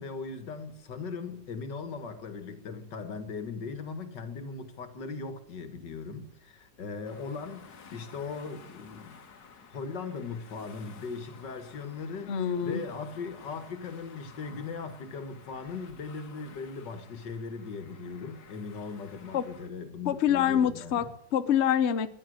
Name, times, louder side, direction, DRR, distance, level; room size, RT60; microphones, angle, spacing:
voice 1, 0.0-9.2 9.7-12.3 12.6-21.1, left 4 dB, 85° left, 2.3 m, -39 dB
sound 1, 7.0-19.7, left 6 dB, 65° left, 1.8 m, -53 dB
voice 2, 12.3-12.8 19.3-19.5 20.0-22.2, left 9 dB, 50° left, 1.0 m, -26 dB
15.0 x 10.5 x 7.8 m
omnidirectional pair, 1.8 m